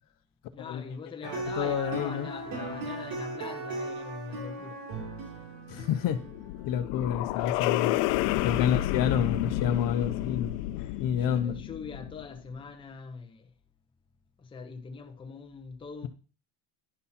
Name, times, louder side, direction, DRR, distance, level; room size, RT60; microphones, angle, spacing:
voice 1, 0.5-4.8 5.3-5.5 7.4-7.6 11.2-13.5 14.4-16.1, left 5 dB, 10° left, 0.8 m, -42 dB
sound 1, 1.2-6.9, right 2 dB, 65° right, 2.8 m, -37 dB
voice 2, 1.3-2.3 5.7-6.2 6.7-8.0 8.4-11.6, left 9 dB, 45° left, 0.9 m, -29 dB
sound 2, 6.1-12.4, left 16 dB, 75° left, 0.7 m, -30 dB
11.5 x 5.5 x 4.3 m
cardioid pair, 155°, 45 cm